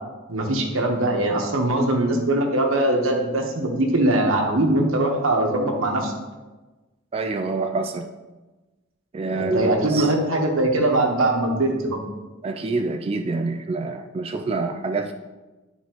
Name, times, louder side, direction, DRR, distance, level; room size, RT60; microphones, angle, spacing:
voice 1, 0.3-6.1 9.3-12.0, right 1 dB, 90° right, 1 dB, 1.2 m, -21 dB
voice 2, 7.1-8.1 9.1-10.1 12.4-15.1, right 3 dB, 30° right, 4 dB, 0.3 m, -26 dB
10.5 x 4.1 x 3.0 m, 1.2 s
head